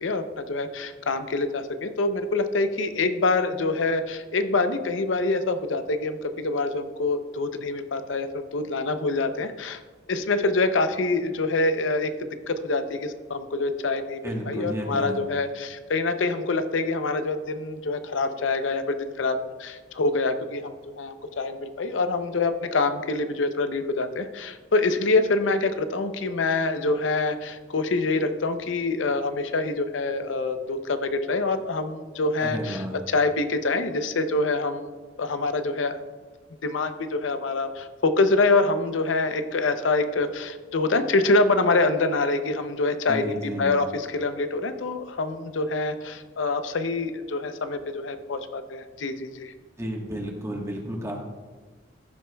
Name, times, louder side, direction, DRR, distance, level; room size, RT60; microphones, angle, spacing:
voice 1, 0.0-9.8 10.1-12.1 12.5-36.0 36.6-49.5, left 3 dB, 85° left, 9 dB, 0.6 m, -25 dB
voice 2, 14.2-15.2 32.4-32.9 43.1-43.7 49.8-51.2, right 1 dB, 15° right, 0 dB, 1.2 m, -32 dB
14.5 x 7.7 x 2.3 m, 1.4 s
head